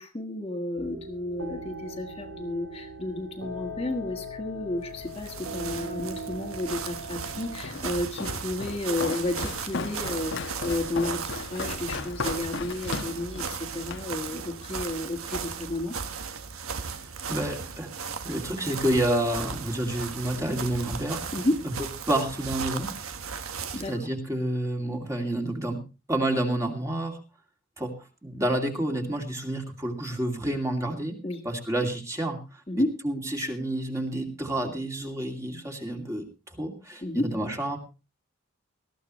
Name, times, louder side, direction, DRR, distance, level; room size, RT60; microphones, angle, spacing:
voice 1, 0.0-15.9 21.3-21.6 23.7-23.9 31.2-31.4 32.7-32.9 37.0-37.3, left 1 dB, 25° left, 3 dB, 1.5 m, -32 dB
sound 1, 0.8-7.6, equal, 60° right, 2.9 m, -39 dB
sound 2, 4.9-24.0, right 6 dB, 75° right, 1.4 m, -36 dB
Walk footsteps, 7.6-14.1, left 3 dB, 60° left, 1.1 m, -36 dB
voice 2, 17.0-21.2 21.6-21.7 22.1-22.9 23.3-23.6 23.9-25.8 26.1-27.2 27.8-27.9 28.2-31.2 31.4-37.8, right 1 dB, 15° right, 3 dB, 2.4 m, -29 dB
19.5 x 14.0 x 3.1 m, 0.31 s
head